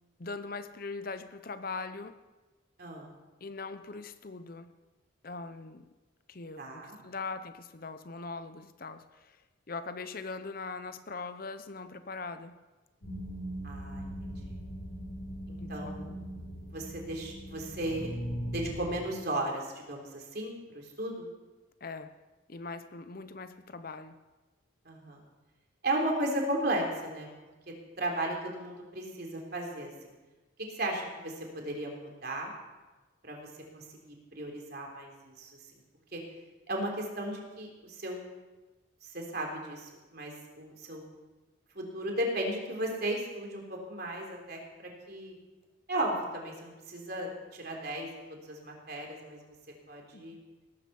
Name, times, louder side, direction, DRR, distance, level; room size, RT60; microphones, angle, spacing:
voice 1, 0.2-2.1 3.4-4.7 5.2-5.9 6.3-9.4 9.7-12.6 15.6-16.2 21.8-22.1 22.5-24.2 50.1-50.4, left 4 dB, 45° left, 10 dB, 0.7 m, -41 dB
voice 2, 6.6-7.0 13.6-14.5 15.5-16.2 16.7-18.1 18.5-21.3 24.9-25.2 25.8-27.3 27.7-30.1 30.7-32.5 33.2-35.5 36.1-36.2 36.7-38.2 39.0-41.0 41.8-45.3 45.9-49.4 49.9-50.4, right 1 dB, 50° right, 0 dB, 3.5 m, -35 dB
sound 1, 13.0-18.9, equal, 70° left, 5.3 m, -40 dB
18.5 x 9.7 x 7.1 m, 1.2 s
head